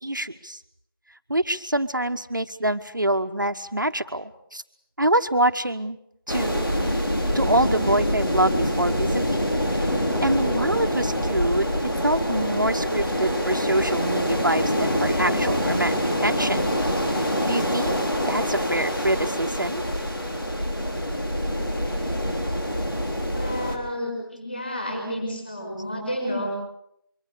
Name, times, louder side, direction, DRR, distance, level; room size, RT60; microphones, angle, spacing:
voice 1, 0.0-0.6 1.3-4.6 5.0-6.0 6.3-7.0 7.3-9.4 9.7-9.9 10.2-11.7 12.0-16.7 17.1-18.0 18.3-19.8, right 1 dB, 55° right, 7 dB, 1.1 m, -25 dB
sound 1, 6.3-23.8, equal, 70° left, 4.9 m, -25 dB
voice 2, 23.3-26.5, equal, 25° left, 3 dB, 5.8 m, -30 dB
24.5 x 23.5 x 6.9 m, 0.75 s
figure-of-eight pair, 175°, 12 cm